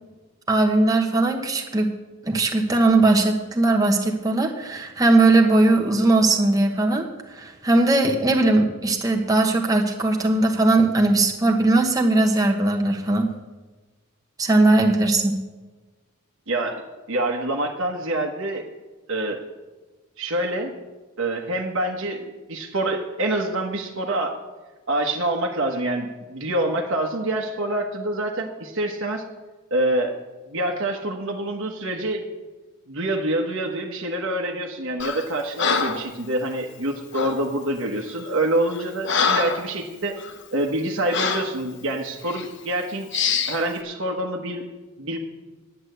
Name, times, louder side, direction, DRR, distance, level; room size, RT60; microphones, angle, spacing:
voice 1, 0.5-1.9 2.2-7.0 7.3-13.3 14.4-15.3, right 2 dB, 15° right, 1 dB, 1.1 m, -19 dB
voice 2, 16.5-16.8 17.1-18.6 19.1-19.4 20.2-20.7 21.2-24.4 24.9-29.2 29.7-30.2 30.5-32.2 32.9-40.2 40.5-44.6 45.0-45.2, right 1 dB, 60° right, 1 dB, 1.2 m, -26 dB
Breathing, 35.0-35.3 35.6-36.1 37.1-37.4 38.1-38.2 38.7-39.7 40.2-40.3 41.1-41.5 42.2-42.5 43.1-43.6, left 5 dB, 55° left, 1.0 m, -25 dB
10.0 x 8.0 x 7.9 m, 1.3 s
head